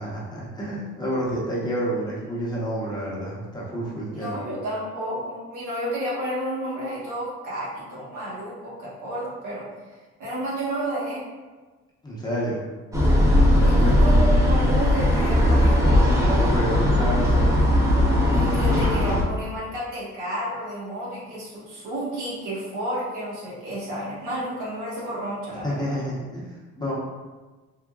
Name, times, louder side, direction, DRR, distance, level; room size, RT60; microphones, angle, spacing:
voice 1, 0.0-4.4 12.0-12.6 13.6-14.1 16.1-17.6 25.6-26.9, equal, 15° left, -7 dB, 0.9 m, -29 dB
voice 2, 4.1-9.7 10.2-11.2 13.6-15.8 18.1-26.0, right 1 dB, 80° right, -7 dB, 1.2 m, -31 dB
sound 1, 12.9-19.2, left 1 dB, 10° right, 0.7 m, -18 dB
3.8 x 2.2 x 2.3 m, 1.3 s
cardioid pair, 90°, 30 cm